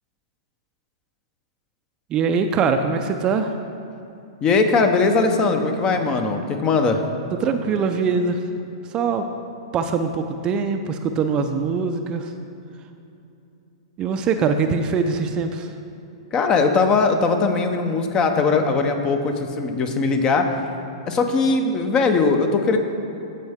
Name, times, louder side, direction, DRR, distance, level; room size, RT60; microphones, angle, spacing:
voice 1, 2.1-3.5 7.4-8.4 8.9-9.2 9.7-12.3 14.0-15.7, right 5 dB, 30° right, 6 dB, 0.5 m, -22 dB
voice 2, 4.4-7.0 16.3-20.5 21.1-22.8, left 4 dB, 25° left, 6 dB, 0.9 m, -20 dB
15.0 x 5.4 x 3.6 m, 2.8 s
hypercardioid pair, 115°, 3 cm